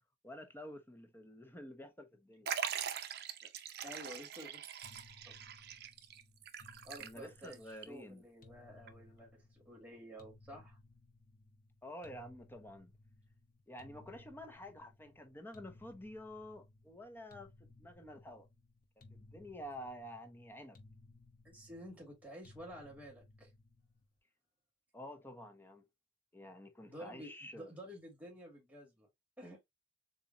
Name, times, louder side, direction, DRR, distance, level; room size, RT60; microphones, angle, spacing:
voice 1, 0.2-2.5 7.0-8.2 11.8-12.9 13.7-18.5 19.0-20.8 24.9-25.8 26.3-27.7, left 1 dB, 10° left, 1.0 m, -50 dB
Liquid, 2.5-7.5 7.8-7.9 8.9-9.0, right 8 dB, 60° right, 0.6 m, -42 dB
voice 2, 3.8-4.7 5.3-5.4 6.8-10.8 21.4-23.5 26.8-29.1 29.4-29.7, equal, 10° right, 2.0 m, -51 dB
sound 1, 4.8-24.1, left 2 dB, 50° left, 0.9 m, -61 dB
7.0 x 2.6 x 2.6 m
head